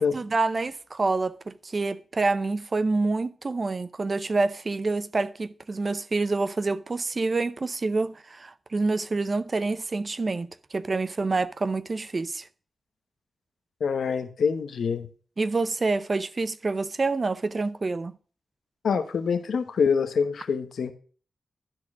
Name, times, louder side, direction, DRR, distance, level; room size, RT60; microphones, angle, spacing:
voice 1, 0.0-12.5 15.4-18.1, right 3 dB, 40° right, 0.6 m, -27 dB
voice 2, 13.8-15.1 18.8-20.9, left 6 dB, 80° left, 0.9 m, -25 dB
12.0 x 4.4 x 6.0 m
cardioid pair, 80°, 0 cm